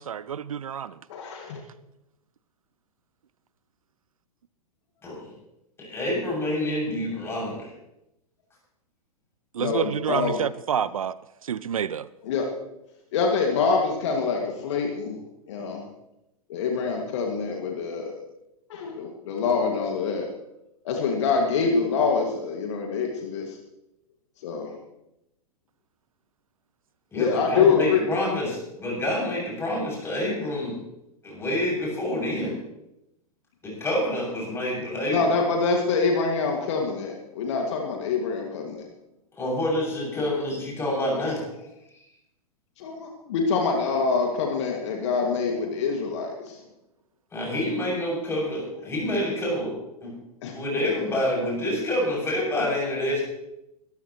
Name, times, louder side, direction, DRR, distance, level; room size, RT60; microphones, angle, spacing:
voice 1, 0.0-1.0 9.5-11.2 11.4-12.1, right 8 dB, 65° right, 18 dB, 0.5 m, -28 dB
voice 2, 1.1-1.6 9.6-10.4 12.2-12.5 13.1-15.1 15.5-15.8 16.5-18.2 18.7-20.3 20.8-23.6 24.4-24.7 27.2-28.0 34.9-38.9 42.8-46.6 50.4-50.5, left 5 dB, 50° left, 1 dB, 2.4 m, -25 dB
voice 3, 5.8-7.7 27.1-30.7 31.2-32.5 33.6-35.3 39.4-41.4 47.3-49.7 50.0-50.1 50.5-53.2, left 1 dB, 15° left, -4 dB, 7.6 m, -27 dB
22.5 x 14.0 x 3.2 m, 0.87 s
figure-of-eight pair, 105°, 19 cm